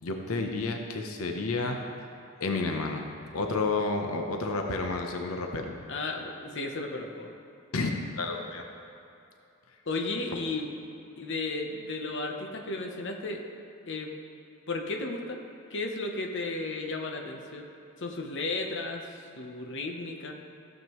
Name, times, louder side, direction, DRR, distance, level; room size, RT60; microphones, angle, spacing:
voice 1, 0.0-1.8 2.4-3.0 3.3-5.8 7.7-7.9 8.2-8.6, left 3 dB, 90° left, 3 dB, 0.8 m, -30 dB
voice 2, 5.9-7.3 9.9-10.7 11.2-13.4 13.9-14.1 14.7-15.4 15.7-17.6 18.0-20.3, left 3 dB, 60° left, 2 dB, 0.9 m, -34 dB
15.0 x 7.6 x 3.1 m, 2.7 s
head